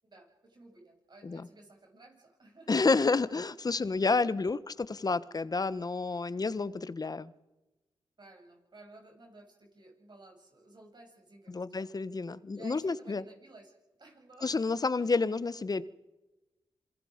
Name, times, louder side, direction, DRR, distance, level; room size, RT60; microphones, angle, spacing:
voice 1, 0.0-2.7 8.2-11.9 12.5-13.7 14.0-14.5 14.9-15.1, right 2 dB, 50° right, 1 dB, 7.8 m, -55 dB
voice 2, 2.7-7.3 11.5-13.2 14.4-15.8, left 4 dB, 40° left, 16 dB, 1.2 m, -30 dB
27.5 x 21.0 x 5.2 m, 1.1 s
supercardioid pair, 45°, 10 cm